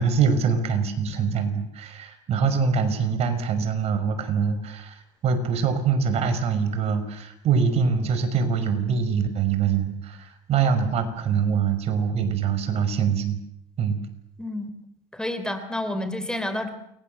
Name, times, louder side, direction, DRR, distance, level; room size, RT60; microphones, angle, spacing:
voice 1, 0.0-13.4 13.8-14.0, right 6 dB, 50° right, 9 dB, 5.8 m, -24 dB
voice 2, 14.4-14.7 15.1-16.7, left 1 dB, 5° left, 9 dB, 3.1 m, -29 dB
29.0 x 23.5 x 8.0 m, 0.76 s
supercardioid pair, 110°, 14 cm